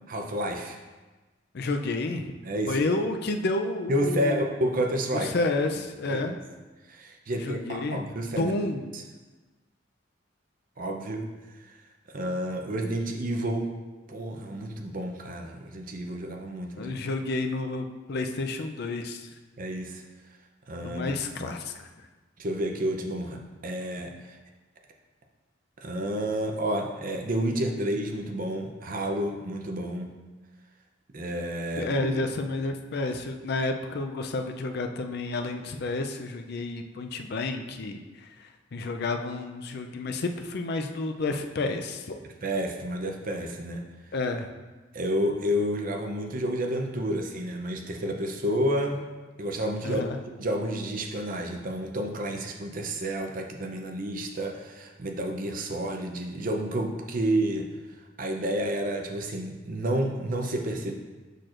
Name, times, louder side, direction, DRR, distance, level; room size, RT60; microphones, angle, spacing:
voice 1, 0.1-0.8 2.4-2.8 3.9-5.3 6.0-6.4 6.9-8.5 8.9-9.0 10.8-11.3 11.5-11.8 12.1-13.8 14.1-17.0 19.6-20.0 20.7-21.1 21.4-21.6 22.4-24.4 25.8-30.1 31.1-32.1 42.4-43.8 44.9-49.0 49.4-50.0 50.4-57.7 58.2-60.9, right 1 dB, 45° right, 3 dB, 0.6 m, -30 dB
voice 2, 1.5-2.3 2.7-4.5 5.1-6.3 7.4-8.0 8.4-8.8 16.8-19.3 20.8-21.9 31.8-42.2 44.1-44.5 49.8-50.2, left 2 dB, 55° left, 5 dB, 0.4 m, -30 dB
6.6 x 6.0 x 2.5 m, 1.2 s
head